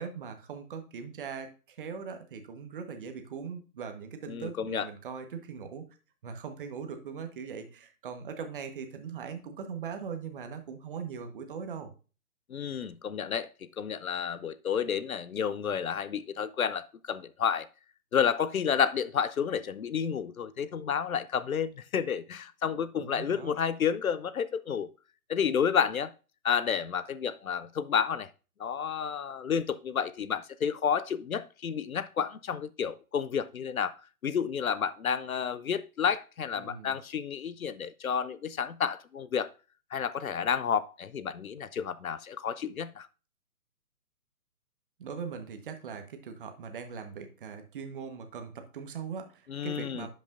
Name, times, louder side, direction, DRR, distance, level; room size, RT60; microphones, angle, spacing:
voice 1, 0.0-5.9 6.2-11.9 23.0-23.5 36.5-37.0 45.0-50.1, right 6 dB, 35° right, 1.2 m, -40 dB
voice 2, 4.3-4.9 12.5-17.7 18.1-24.9 25.3-26.1 26.4-28.3 28.6-33.9 34.2-39.5 39.9-43.1 49.5-50.1, left 7 dB, 70° left, 0.7 m, -30 dB
11.0 x 5.4 x 2.5 m
figure-of-eight pair, 135°, 44 cm